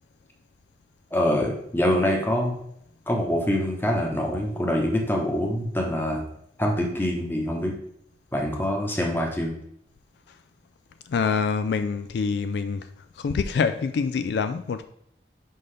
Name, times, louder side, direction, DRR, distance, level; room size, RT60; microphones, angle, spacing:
voice 1, 1.1-2.5 3.1-6.2 6.6-7.8 8.3-9.6, left 1 dB, 10° left, 0 dB, 0.9 m, -25 dB
voice 2, 11.1-14.9, left 5 dB, 70° left, 10 dB, 0.3 m, -26 dB
5.6 x 5.3 x 3.3 m, 0.72 s
head